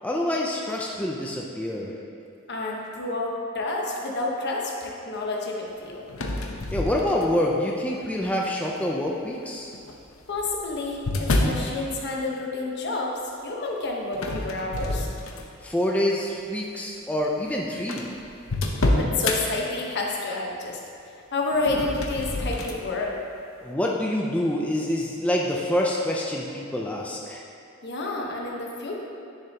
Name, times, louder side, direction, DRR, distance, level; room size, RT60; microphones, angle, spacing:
voice 1, 0.0-1.9 6.7-9.7 15.6-18.1 23.6-27.4, left 1 dB, 5° left, -2 dB, 0.5 m, -26 dB
voice 2, 2.5-6.0 10.3-15.1 19.0-20.8 21.3-23.1 27.8-28.9, left 2 dB, 55° left, -1 dB, 1.1 m, -29 dB
sound 1, 6.1-7.5 8.2-8.6 9.7-11.7 14.1-15.7 16.2-16.4 17.2-17.3 17.4-17.5 17.9-19.4 21.5-22.8, left 2 dB, 85° left, 0.8 m, -28 dB
10.0 x 6.9 x 2.9 m, 2.5 s
head